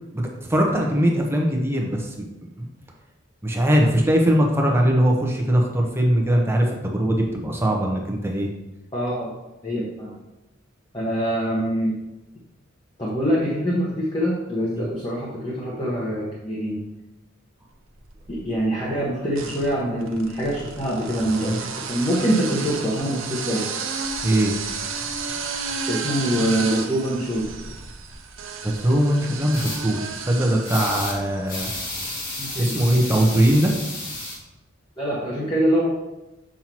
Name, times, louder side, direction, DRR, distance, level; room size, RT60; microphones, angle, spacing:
voice 1, 0.1-2.1 3.4-8.5 24.2-24.5 28.6-31.7 32.6-33.7, right 1 dB, 10° right, 0 dB, 0.9 m, -20 dB
voice 2, 8.9-9.3 9.6-10.1 10.9-12.0 13.0-16.8 18.3-23.7 25.9-27.5 32.4-32.7 35.0-35.9, equal, 25° left, -6 dB, 1.2 m, -24 dB
sound 1, 17.9-18.6 19.3-31.6, right 5 dB, 70° right, 0.8 m, -32 dB
sound 2, 29.5-29.8 30.6-31.2 31.5-34.4, left 1 dB, 45° left, 1.9 m, -32 dB
7.3 x 5.6 x 3.0 m, 0.99 s
head